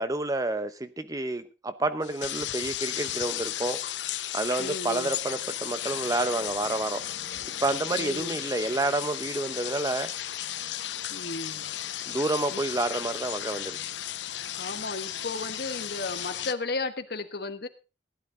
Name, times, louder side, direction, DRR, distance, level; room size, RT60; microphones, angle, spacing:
voice 1, 0.0-3.8 4.3-7.0 7.6-10.1 12.0-13.8, right 2 dB, 20° right, 11 dB, 0.8 m, -29 dB
sound 1, 2.0-16.5, left 12 dB, 85° left, 0.7 m, -34 dB
voice 2, 4.6-5.1 8.0-8.4 11.1-11.6 12.5-12.6 14.6-17.7, left 3 dB, 60° left, 9 dB, 1.4 m, -34 dB
15.5 x 11.5 x 3.8 m, 0.31 s
head